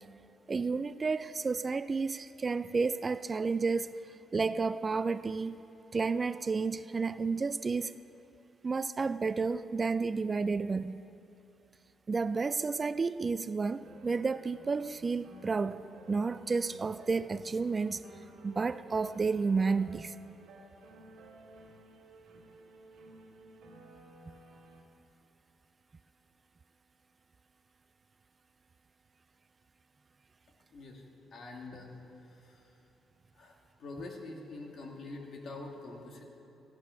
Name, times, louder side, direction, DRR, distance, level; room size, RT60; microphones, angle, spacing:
voice 1, 0.5-4.0 4.3-5.6 5.9-7.9 8.6-11.0 12.1-18.0 18.4-20.1, right 4 dB, 30° right, 0.3 m, -31 dB
sound 1, 13.8-24.8, right 3 dB, 70° right, 2.3 m, -55 dB
voice 2, 30.7-31.0 31.3-31.9 32.4-32.6 33.4-36.2, left 2 dB, 60° left, 2.0 m, -45 dB
15.0 x 9.7 x 5.7 m
cardioid pair, 90°, 0 cm